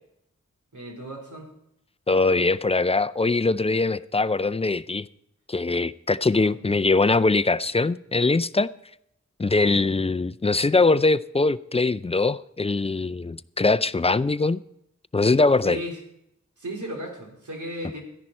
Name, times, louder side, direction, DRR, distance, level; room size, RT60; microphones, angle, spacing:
voice 1, 0.7-1.5 6.3-6.5 15.6-16.0 16.6-18.0, right 1 dB, 85° right, 3.3 m, -35 dB
voice 2, 2.1-5.1 5.5-8.7 9.4-14.6 15.1-15.8, left 3 dB, 20° left, 0.4 m, -22 dB
14.0 x 10.5 x 4.3 m
wide cardioid pair, 75°, 30 cm